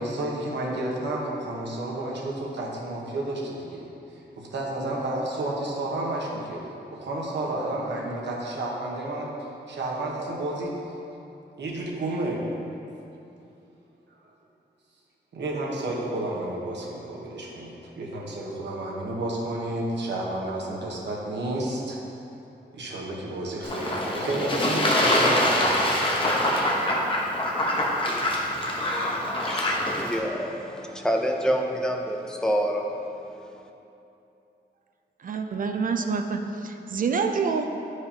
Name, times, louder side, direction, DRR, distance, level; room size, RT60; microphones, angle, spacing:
voice 1, 0.0-3.9 4.4-6.6 6.9-10.7 11.6-12.4 14.2-14.3 15.3-22.0 22.7-26.7, right 1 dB, 85° right, -3 dB, 1.0 m, -31 dB
Fowl / Bird / Water, 23.6-30.2, left 1 dB, 30° left, 0.8 m, -24 dB
voice 2, 28.5-32.9 33.3-33.7, equal, 5° left, 2 dB, 0.5 m, -28 dB
voice 3, 35.2-37.6, right 5 dB, 50° right, 5 dB, 0.4 m, -27 dB
10.0 x 4.7 x 2.8 m, 2.9 s
wide cardioid pair, 145°, 18 cm